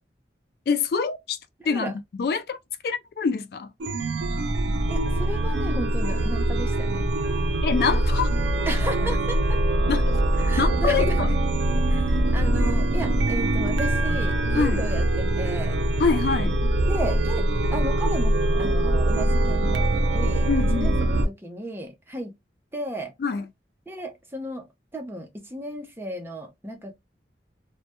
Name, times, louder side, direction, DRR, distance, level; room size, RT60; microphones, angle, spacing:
voice 1, 0.7-1.4 1.6-1.9 2.2-2.6 2.8-3.7 7.6-8.3 9.9-11.3 14.5-14.8 16.0-16.6 20.5-21.0 23.2-23.5, left 5 dB, 60° left, 0.3 m, -25 dB
Chime, 3.8-21.2, right 1 dB, 90° right, 0.4 m, -23 dB
voice 2, 4.9-7.0 8.7-9.6 10.5-11.2 11.9-15.8 16.9-17.4 17.7-22.3 22.7-23.1 23.9-24.7 24.9-26.9, right 1 dB, 15° right, 0.5 m, -34 dB
2.2 x 2.1 x 2.8 m
head